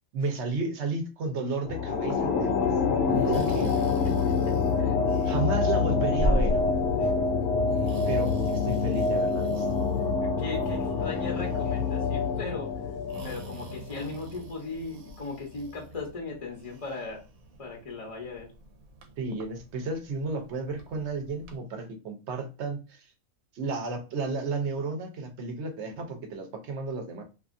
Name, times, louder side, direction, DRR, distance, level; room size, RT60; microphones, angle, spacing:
voice 1, 0.1-2.6 3.1-3.8 5.2-6.6 8.1-9.7 19.2-23.1 23.5-27.2, right 3 dB, 60° right, 5 dB, 0.9 m, -33 dB
sound 1, 1.6-14.2, left 5 dB, 65° left, 0.9 m, -26 dB
Breathing, 1.9-21.6, equal, 85° right, 1.1 m, -39 dB
voice 2, 4.0-5.0 7.0-7.1 10.2-12.7 13.2-17.2 17.6-18.5, left 3 dB, 35° left, -1 dB, 0.5 m, -38 dB
2.7 x 2.4 x 2.5 m, 0.31 s
omnidirectional pair, 1.4 m